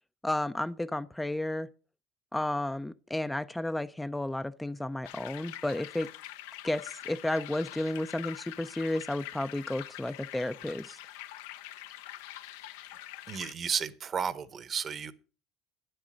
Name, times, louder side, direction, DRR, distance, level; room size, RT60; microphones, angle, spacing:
voice 1, 0.2-1.7 2.3-6.1 6.6-11.0, left 1 dB, 10° left, 0.4 m, -32 dB
sound 1, 5.0-13.5, left 14 dB, 85° left, 0.7 m, -45 dB
voice 2, 13.3-15.1, right 7 dB, 40° right, 1.0 m, -33 dB
10.0 x 7.8 x 6.1 m
supercardioid pair, 85°, 0 cm